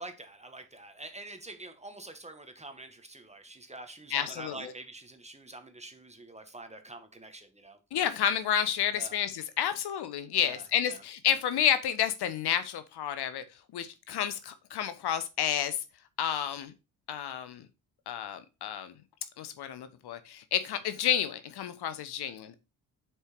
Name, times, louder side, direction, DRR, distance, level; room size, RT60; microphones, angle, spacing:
voice 1, 0.0-7.8 8.9-9.2 10.4-11.0, right 2 dB, 15° right, 1.7 m, -46 dB
voice 2, 4.1-4.7 7.9-13.4 13.7-15.8 16.2-16.7 17.1-17.7 18.1-18.9 19.4-22.5, left 9 dB, 60° left, 0.9 m, -30 dB
6.6 x 4.7 x 4.5 m
hypercardioid pair, 45°, 44 cm